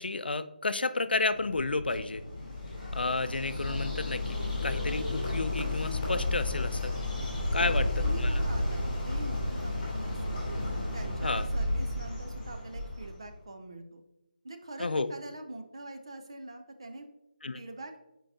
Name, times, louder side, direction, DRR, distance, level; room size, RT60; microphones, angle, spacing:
voice 1, 0.0-2.2 2.9-4.4 4.6-6.9 7.5-8.4 11.2-11.4 14.8-15.1 17.4-17.6, left 3 dB, 90° left, 12 dB, 0.5 m, -31 dB
sound 1, 1.3-10.4, left 1 dB, 50° left, 0.7 m, -46 dB
Bird, 1.9-13.3, left 2 dB, 20° left, 2.1 m, -32 dB
voice 2, 7.6-10.4 10.9-14.0 14.4-17.0 17.5-17.9, right 2 dB, 35° right, 6 dB, 0.5 m, -44 dB
7.6 x 4.6 x 2.7 m, 0.92 s
figure-of-eight pair, 180°, 5 cm